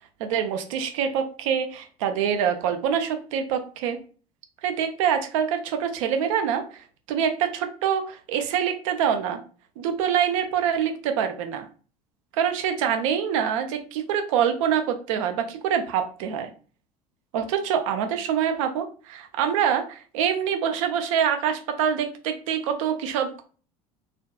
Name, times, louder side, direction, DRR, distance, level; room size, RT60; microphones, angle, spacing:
voice 1, 0.2-4.0 4.6-9.4 9.8-11.7 12.4-16.5 17.3-23.4, right 8 dB, 60° right, 6 dB, 0.5 m, -25 dB
2.5 x 2.2 x 2.2 m, 0.38 s
figure-of-eight pair, 65°, 19 cm